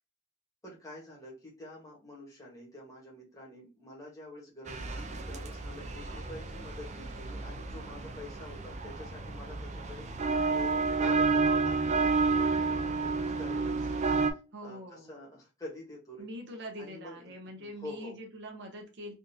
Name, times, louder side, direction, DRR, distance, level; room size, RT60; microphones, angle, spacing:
voice 1, 0.6-14.1 14.6-16.3 16.8-17.2 17.6-18.1, left 1 dB, 15° left, -4 dB, 1.2 m, -47 dB
sound 1, 4.7-14.3, right 4 dB, 35° right, 0.4 m, -30 dB
voice 2, 14.5-15.2 16.2-19.1, equal, 60° right, 2 dB, 0.9 m, -44 dB
3.6 x 2.6 x 2.7 m, 0.30 s
head